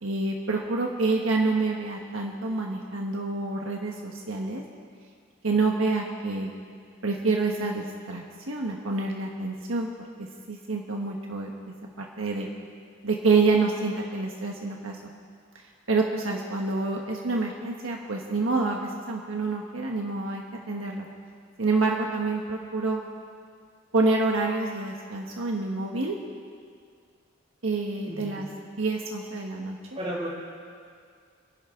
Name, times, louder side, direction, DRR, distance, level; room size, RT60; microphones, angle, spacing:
voice 1, 0.0-4.6 5.4-6.5 7.0-9.9 10.2-11.5 12.0-12.5 13.0-15.0 15.9-21.1 21.6-23.0 23.9-26.2 27.6-28.5 28.8-29.8, right 3 dB, 80° right, 0 dB, 1.4 m, -27 dB
voice 2, 28.1-28.5 29.9-30.3, right 1 dB, 30° right, -5 dB, 5.1 m, -34 dB
29.5 x 11.0 x 3.8 m, 2.2 s
head